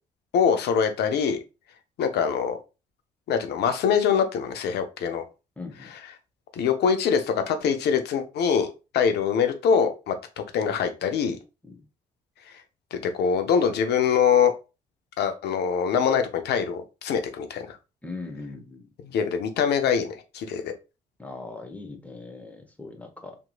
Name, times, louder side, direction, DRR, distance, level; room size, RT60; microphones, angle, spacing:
voice 1, 0.3-1.4 2.0-2.6 3.3-5.2 6.6-8.7 8.9-10.2 10.5-11.4 12.9-14.5 15.2-17.8 19.0-20.7, left 7 dB, 65° left, 0.6 m, -23 dB
voice 2, 5.6-5.9 11.7-11.8 18.0-18.9 21.2-23.4, left 3 dB, 10° left, 0.8 m, -39 dB
2.9 x 2.6 x 2.3 m
hypercardioid pair, 50°, 19 cm